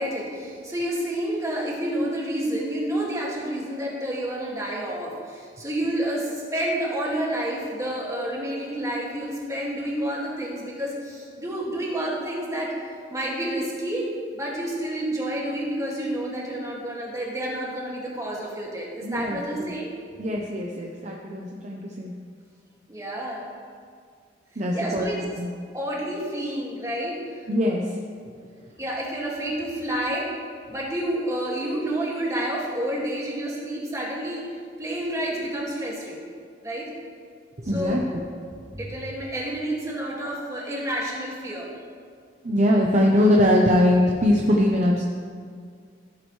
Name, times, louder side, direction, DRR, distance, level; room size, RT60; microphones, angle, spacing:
voice 1, 0.0-12.7 13.1-19.9 22.9-23.5 24.7-25.2 25.7-27.2 28.8-30.3 30.7-34.5 34.8-36.2 36.6-36.9 37.6-38.0 38.7-41.7, right 1 dB, 20° right, -4 dB, 2.1 m, -29 dB
voice 2, 19.0-19.7 20.2-22.1 24.6-25.1 25.4-25.5 27.5-27.8 37.7-38.0 42.4-45.0, left 1 dB, 40° right, -2 dB, 0.8 m, -21 dB
15.5 x 7.9 x 3.2 m, 2.1 s
head